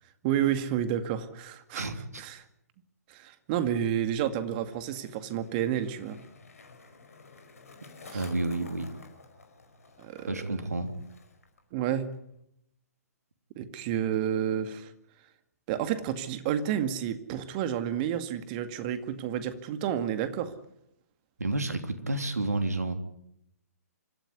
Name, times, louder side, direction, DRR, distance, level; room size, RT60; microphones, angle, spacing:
voice 1, 0.2-1.9 2.2-2.4 3.1-6.2 8.1-8.2 10.0-10.6 11.7-12.1 13.6-14.9 15.7-20.5, right 10 dB, 35° right, 10 dB, 2.2 m, -30 dB
voice 2, 1.7-2.2 8.1-8.9 10.3-10.9 21.4-22.9, right 2 dB, 75° right, 8 dB, 3.2 m, -30 dB
Skateboard, 4.0-11.6 11.9-12.4, left 3 dB, 65° left, 5.0 m, -52 dB
26.0 x 14.5 x 9.5 m, 0.78 s
figure-of-eight pair, 125°, 8 cm